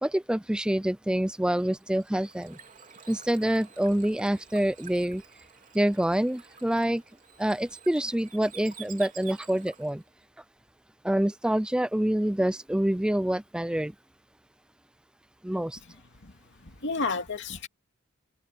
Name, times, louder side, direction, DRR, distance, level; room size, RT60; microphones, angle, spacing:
voice 1, 0.0-2.6 3.1-5.2 5.7-7.0 7.4-10.0 11.0-13.9 15.4-15.8, right 1 dB, 5° right, 0.4 m, -26 dB
Bird / Water, 1.6-10.0, right 8 dB, 40° right, 3.4 m, -50 dB
voice 2, 15.8-17.7, left 4 dB, 60° left, 2.7 m, -33 dB
open air
head